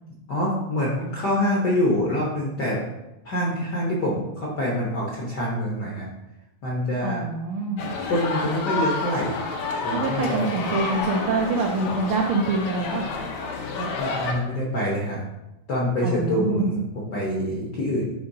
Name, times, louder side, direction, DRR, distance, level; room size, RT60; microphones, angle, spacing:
voice 1, 0.3-2.8 3.2-6.1 6.6-7.2 8.0-9.4 9.8-10.5 13.8-15.2 15.7-18.1, left 1 dB, 65° left, -5 dB, 1.0 m, -26 dB
voice 2, 7.0-7.8 9.9-13.0 16.0-16.7, right 3 dB, 85° right, 0 dB, 1.2 m, -25 dB
sound 1, 7.8-14.3, left 3 dB, 85° left, 2.2 m, -29 dB
10.0 x 3.8 x 2.7 m, 0.93 s
omnidirectional pair, 3.3 m